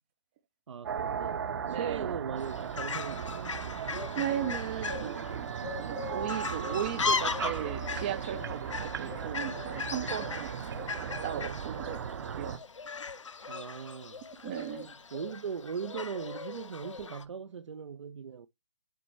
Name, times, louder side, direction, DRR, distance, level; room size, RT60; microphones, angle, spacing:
voice 1, 0.7-3.4 13.5-14.2 15.1-18.5, right 7 dB, 75° right, 0.5 m, -39 dB
sound 1, 0.8-12.6, right 7 dB, 50° right, 0.8 m, -37 dB
voice 2, 1.6-2.2 4.1-5.2 5.8-10.5 10.9-12.0 12.3-12.6 14.4-14.9, right 11 dB, 20° right, 0.3 m, -36 dB
Fowl, 2.4-17.2, left 5 dB, 85° left, 0.8 m, -38 dB
6.6 x 4.1 x 4.4 m
hypercardioid pair, 145°, 15 cm